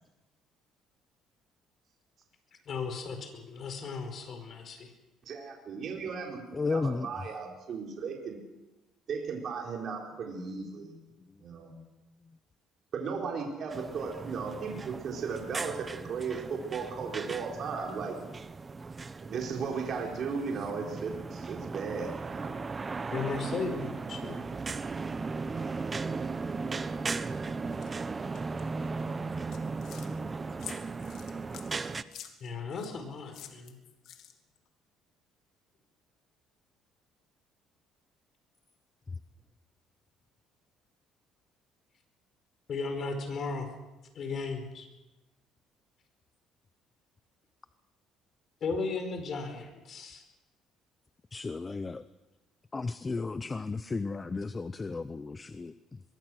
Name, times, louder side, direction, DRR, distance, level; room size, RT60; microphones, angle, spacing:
voice 1, 2.7-4.9 23.1-24.4 32.4-33.8 42.7-43.7 44.1-44.9 48.6-50.2, left 4 dB, 45° left, 6 dB, 4.8 m, -36 dB
voice 2, 5.2-6.4 6.7-8.4 9.1-11.0 11.4-11.7 12.9-18.2 19.2-22.5, right 5 dB, 45° right, 0 dB, 4.2 m, -36 dB
voice 3, 6.5-7.2 51.3-52.0 52.7-56.0, left 3 dB, 20° left, 13 dB, 0.7 m, -34 dB
sound 1, 13.7-32.0, right 4 dB, 20° right, 0.8 m, -37 dB
sound 2, 27.8-27.9 28.3-28.6 29.3-30.1 30.6-32.9 33.3-34.6, left 10 dB, 65° left, 2.4 m, -47 dB
23.0 x 22.5 x 6.3 m, 1.1 s
cardioid pair, 140°, 0 cm